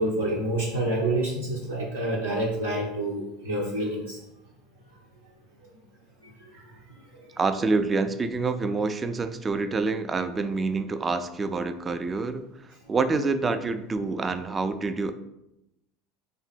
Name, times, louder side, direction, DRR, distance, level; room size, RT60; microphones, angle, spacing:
voice 1, 0.0-4.2 6.4-6.6, right 1 dB, 80° right, -5 dB, 0.6 m, -28 dB
voice 2, 7.4-15.1, right 3 dB, 25° right, 10 dB, 0.3 m, -27 dB
3.4 x 2.1 x 4.2 m, 0.86 s
figure-of-eight pair, 75°, 0 cm